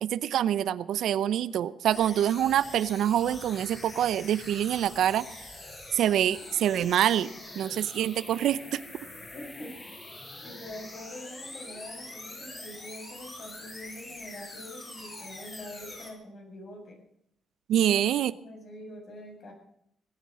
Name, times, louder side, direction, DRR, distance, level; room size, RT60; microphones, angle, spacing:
voice 1, 0.0-5.3 5.9-7.3 7.6-8.8 17.7-18.3, right 11 dB, 75° right, 16 dB, 0.7 m, -26 dB
sound 1, 1.9-16.1, left 2 dB, 25° left, 6.2 m, -44 dB
voice 2, 9.3-9.7 10.4-17.0 17.8-19.5, left 1 dB, 50° left, 1 dB, 7.5 m, -44 dB
19.0 x 9.9 x 7.6 m, 0.75 s
cardioid pair, 90°, 0 cm